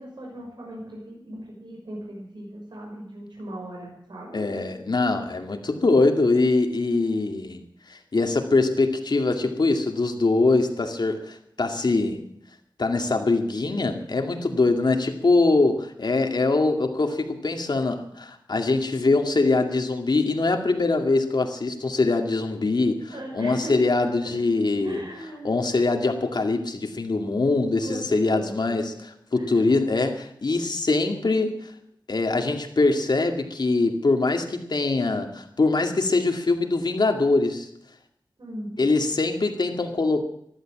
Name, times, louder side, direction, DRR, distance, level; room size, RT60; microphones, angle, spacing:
voice 1, 0.0-4.4 23.1-23.8 24.2-24.3 24.8-25.5 27.8-28.9 29.3-29.6 38.4-38.7, right 1 dB, 75° right, -2 dB, 6.0 m, -38 dB
voice 2, 4.3-7.6 7.9-12.2 12.8-25.0 25.4-28.9 29.3-31.5 32.1-37.7 38.8-40.2, left 3 dB, 70° left, 4 dB, 2.3 m, -23 dB
14.5 x 12.5 x 7.5 m, 0.73 s
wide cardioid pair, 75°, 8 cm